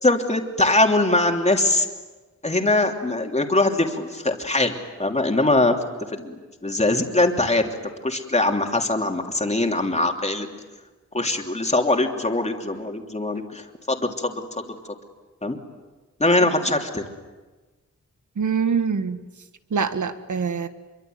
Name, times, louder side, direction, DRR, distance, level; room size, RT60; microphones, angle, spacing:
voice 1, 0.0-1.9 2.4-5.8 6.1-7.7 8.0-10.5 11.1-14.8 15.4-15.6 16.2-17.0, left 2 dB, 25° left, 3 dB, 3.1 m, -22 dB
voice 2, 18.3-19.2 19.7-20.7, right 6 dB, 85° right, 10 dB, 1.7 m, -24 dB
26.5 x 24.0 x 9.4 m, 1.3 s
wide cardioid pair, 100°, 29 cm